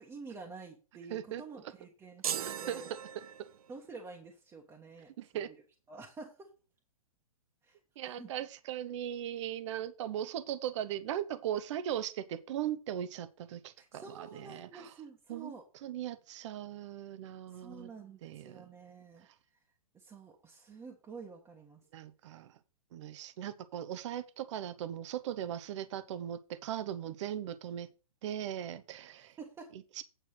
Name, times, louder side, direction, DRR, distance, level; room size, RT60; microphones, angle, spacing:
voice 1, 0.0-2.9 3.7-5.5 5.9-6.5 7.6-7.8 8.2-8.3 13.8-15.6 17.5-19.3 19.9-21.8 29.1-29.7, right 4 dB, 15° right, 1.2 m, -49 dB
voice 2, 1.1-1.4 2.4-3.5 5.2-5.5 8.0-14.9 15.3-15.5 15.8-17.9 18.2-18.7 21.9-22.6 22.9-27.9 28.2-29.4 29.7-30.0, right 11 dB, 55° right, 0.8 m, -39 dB
sound 1, 2.2-3.8, right 9 dB, 80° right, 0.6 m, -38 dB
9.1 x 4.5 x 6.4 m
hypercardioid pair, 135°, 18 cm